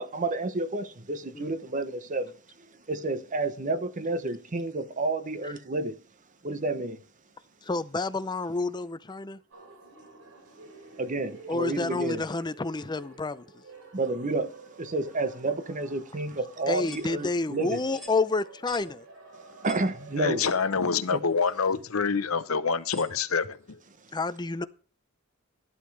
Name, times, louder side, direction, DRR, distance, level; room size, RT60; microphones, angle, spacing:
voice 1, 0.0-2.3 2.9-6.0 6.4-7.0 11.0-12.2 13.9-17.8 19.6-20.5 21.1-21.2, right 2 dB, 40° right, 0.9 m, -30 dB
voice 2, 7.6-9.4 11.5-13.6 16.7-19.0 24.1-24.6, left 3 dB, 20° left, 0.5 m, -29 dB
sound 1, 9.5-20.6, right 3 dB, 85° right, 3.1 m, -51 dB
sound 2, 16.8-17.1 17.9-18.2 18.7-18.9 19.6-19.9 20.4-20.6 21.4-21.5 22.9-23.1, left 1 dB, ahead, 3.2 m, -45 dB
voice 3, 20.2-23.8, left 5 dB, 75° left, 0.9 m, -26 dB
12.0 x 11.5 x 3.3 m
head